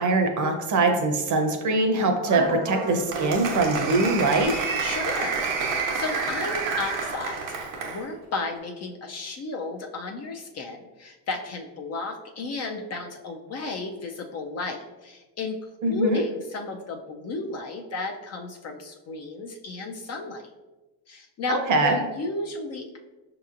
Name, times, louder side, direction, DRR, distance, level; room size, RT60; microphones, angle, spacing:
voice 1, 0.0-4.6 15.8-16.2 21.5-22.0, right 2 dB, 45° right, 5 dB, 0.7 m, -23 dB
Applause, 2.2-8.0, right 4 dB, 80° right, 1.0 m, -29 dB
voice 2, 4.8-5.4 5.7-15.6 15.9-20.5 21.1-23.0, left 3 dB, 40° left, 3 dB, 0.4 m, -33 dB
5.4 x 2.9 x 2.5 m, 1.1 s
cardioid pair, 105°, 44 cm